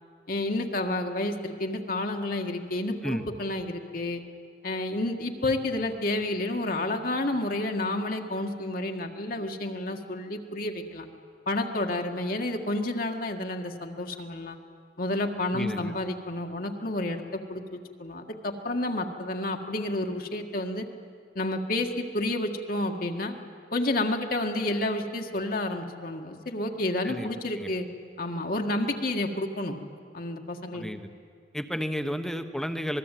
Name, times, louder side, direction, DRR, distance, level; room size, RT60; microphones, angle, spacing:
voice 1, 0.3-4.2 4.6-11.1 11.5-14.6 15.0-20.9 21.4-23.3 23.7-27.9 28.2-29.8 30.1-30.8, left 2 dB, 55° left, 3 dB, 1.9 m, -30 dB
voice 2, 15.5-15.9 27.0-27.7 30.7-31.1 31.5-33.0, equal, 5° left, 8 dB, 1.1 m, -32 dB
26.0 x 20.0 x 9.2 m, 2.2 s
head